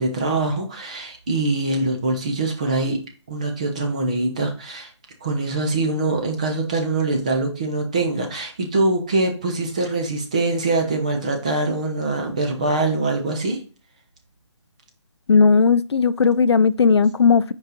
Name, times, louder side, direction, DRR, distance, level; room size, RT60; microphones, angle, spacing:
voice 1, 0.0-4.9 5.2-13.6, right 2 dB, 15° right, 0.5 m, -23 dB
voice 2, 15.3-17.5, left 5 dB, 60° left, 0.4 m, -16 dB
5.3 x 4.8 x 3.8 m
hypercardioid pair, 170°, 16 cm